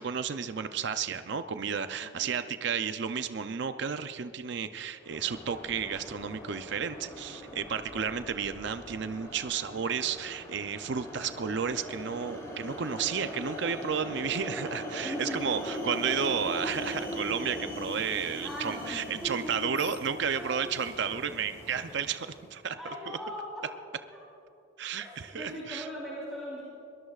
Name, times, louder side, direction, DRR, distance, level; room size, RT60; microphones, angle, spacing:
voice 1, 0.0-22.8 24.8-25.9, right 6 dB, 55° right, 10 dB, 0.5 m, -32 dB
voice 2, 2.0-2.4 15.0-15.5 18.4-19.8 20.3-20.7 22.7-23.7 25.0-26.6, equal, ahead, -9 dB, 3.6 m, -40 dB
sound 1, 5.0-22.5, equal, 15° left, 2.8 m, -40 dB
22.5 x 18.5 x 2.4 m, 2.8 s
head